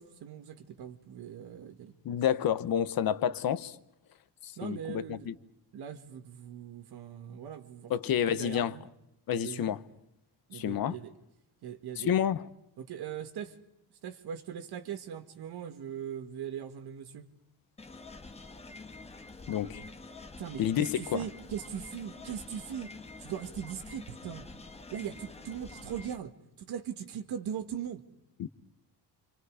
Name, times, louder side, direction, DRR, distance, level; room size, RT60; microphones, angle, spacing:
voice 1, 0.0-1.9 4.6-5.3 5.7-8.9 9.3-9.7 10.5-11.1 11.6-12.1 12.8-13.6 14.0-17.3 20.4-22.9 23.2-24.5 24.9-28.0, right 9 dB, 60° right, 2.1 m, -40 dB
voice 2, 2.0-3.8 4.4-5.3 7.9-8.7 9.3-9.8 10.5-11.0 12.0-12.4 19.5-19.8 20.6-21.2 28.4-28.5, left 9 dB, 55° left, 1.0 m, -29 dB
sound 1, 17.8-26.2, left 3 dB, 15° left, 1.4 m, -47 dB
29.5 x 27.0 x 4.9 m
cardioid pair, 175°, 43 cm